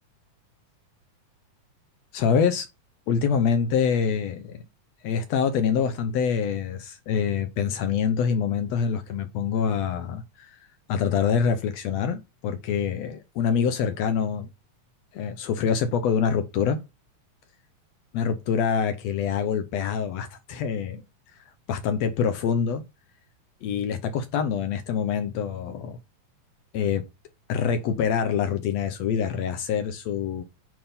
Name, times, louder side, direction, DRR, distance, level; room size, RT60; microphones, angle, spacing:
voice 1, 2.1-2.7 3.1-4.7 5.0-10.6 10.9-14.5 15.1-16.8 18.1-21.0 21.7-22.8 23.6-26.0 26.7-27.0 27.5-30.4, left 7 dB, 70° left, 1.8 m, -25 dB
8.7 x 3.6 x 5.5 m
omnidirectional pair, 3.3 m